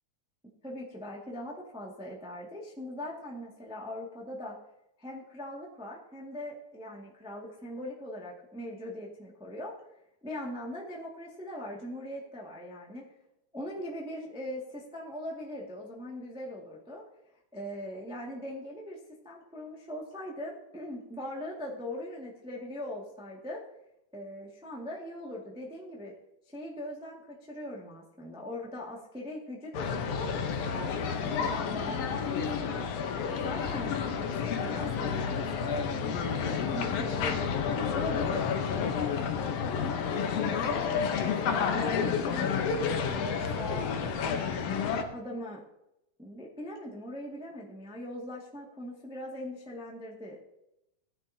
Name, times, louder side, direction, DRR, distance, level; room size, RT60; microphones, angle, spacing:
voice 1, 0.6-4.6 5.0-9.7 10.2-13.0 13.5-17.0 17.5-19.0 19.2-23.6 24.1-26.1 26.5-32.8 33.4-37.4 37.9-38.6 39.7-44.6 44.9-45.6 46.2-50.4, left 1 dB, 5° right, -3 dB, 1.1 m, -41 dB
sound 1, 29.7-45.0, left 6 dB, 65° left, 1.7 m, -30 dB
17.5 x 10.5 x 2.8 m, 0.85 s
omnidirectional pair, 3.8 m